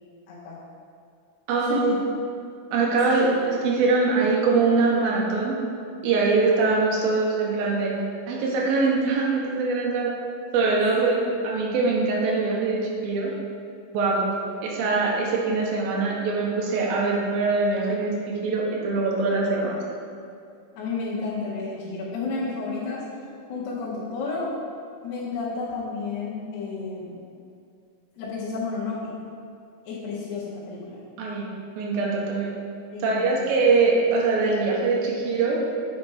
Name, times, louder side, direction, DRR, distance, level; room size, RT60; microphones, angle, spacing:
voice 1, 0.3-0.6 1.6-2.0 3.0-3.3 10.9-11.3 20.8-23.0 23.5-24.5 25.0-27.3 28.2-29.1 29.9-31.0 32.9-33.4, left 4 dB, 90° left, -7 dB, 3.3 m, -31 dB
voice 2, 1.5-1.9 2.7-5.6 6.0-7.9 8.3-10.1 10.5-13.3 13.9-14.3 14.6-18.1 18.4-19.8 31.2-31.4 31.8-32.5 33.0-35.6, right 3 dB, 75° right, -3 dB, 2.8 m, -23 dB
8.6 x 5.1 x 4.3 m, 2.4 s
omnidirectional pair, 4.6 m